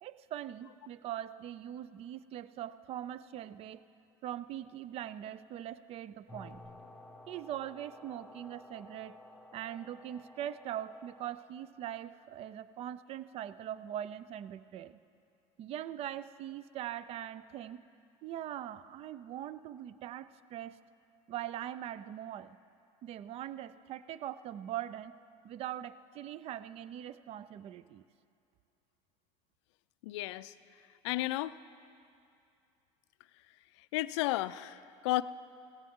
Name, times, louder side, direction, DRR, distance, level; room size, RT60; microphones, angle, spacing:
voice 1, 0.0-3.8 4.2-6.6 7.3-9.2 9.5-15.0 15.6-17.8 18.2-20.8 21.3-22.6 23.0-25.2 25.4-28.0, right 11 dB, 45° right, 16 dB, 0.4 m, -42 dB
sound 1, 6.3-11.3, left 1 dB, ahead, 1.0 m, -53 dB
voice 2, 30.0-30.5 31.0-31.5 33.9-34.8 35.0-35.2, left 17 dB, 85° left, 15 dB, 0.4 m, -32 dB
17.5 x 15.5 x 3.7 m, 2.5 s
supercardioid pair, 115°, 14 cm